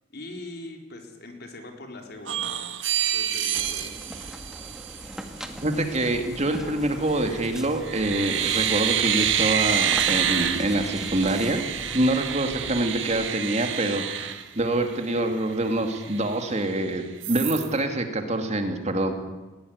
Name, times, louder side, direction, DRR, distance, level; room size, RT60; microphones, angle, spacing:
voice 1, 0.1-2.5 3.1-3.9, left 2 dB, 55° left, 3 dB, 4.2 m, -41 dB
sound 1, 2.3-5.3 7.1-7.5 7.8-15.1 15.5-15.6 15.9-16.8 17.2-17.7, right 9 dB, 65° right, 1.8 m, -28 dB
sound 2, 3.5-13.3, equal, 5° right, 1.9 m, -41 dB
voice 2, 5.6-11.6 11.9-19.1, right 1 dB, 35° right, 5 dB, 2.5 m, -26 dB
20.5 x 17.0 x 9.6 m, 1.2 s
head